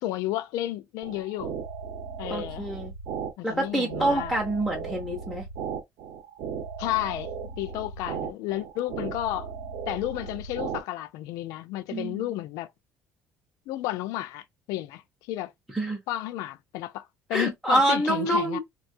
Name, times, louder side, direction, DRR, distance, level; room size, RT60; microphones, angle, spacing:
voice 1, 0.0-1.5 2.2-2.7 3.4-4.4 6.8-7.3 7.6-9.5 9.9-12.7 13.7-15.0 15.3-15.5 16.1-18.6, left 14 dB, 80° left, 0.4 m, -32 dB
sound 1, 1.0-10.8, right 6 dB, 70° right, 0.8 m, -36 dB
voice 2, 2.3-2.9 3.4-5.4 11.9-12.2 15.7-16.0 17.3-18.6, right 1 dB, ahead, 0.6 m, -26 dB
3.5 x 2.3 x 2.5 m
cardioid pair, 175°, 6 cm